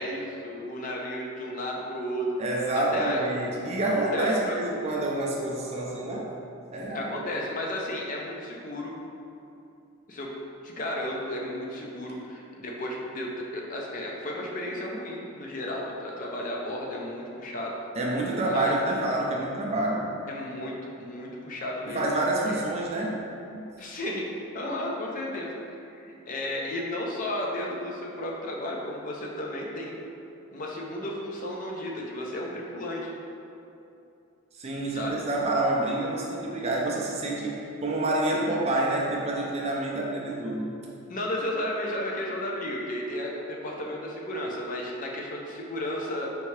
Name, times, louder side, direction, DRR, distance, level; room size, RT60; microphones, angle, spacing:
voice 1, 0.0-2.3 2.7-3.3 4.1-4.6 6.9-8.9 10.1-10.3 10.6-17.8 18.5-18.7 20.3-22.0 22.5-22.6 23.8-24.3 24.5-30.0 30.5-33.1 34.9-35.1 41.1-46.3, left 1 dB, 35° left, -2 dB, 0.4 m, -33 dB
voice 2, 2.4-6.3 6.7-7.3 18.0-20.1 21.8-23.2 23.5-23.7 34.6-40.7, right 2 dB, 30° right, -2 dB, 0.4 m, -28 dB
4.4 x 2.7 x 3.1 m, 2.7 s
head